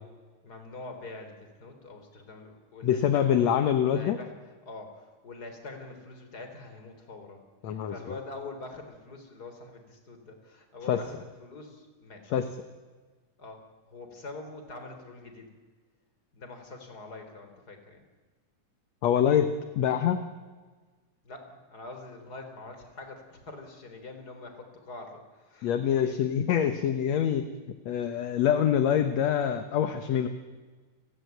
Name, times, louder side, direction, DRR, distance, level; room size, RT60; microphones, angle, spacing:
voice 1, 0.4-12.2 13.4-15.5 16.3-18.0 21.2-26.2, left 3 dB, 30° left, 6 dB, 4.1 m, -45 dB
voice 2, 2.8-4.2 7.6-7.9 10.9-11.0 12.3-12.5 19.0-20.2 25.6-27.5 27.9-30.3, left 9 dB, 65° left, 9 dB, 2.2 m, -25 dB
30.0 x 19.5 x 9.3 m, 1.4 s
omnidirectional pair, 3.7 m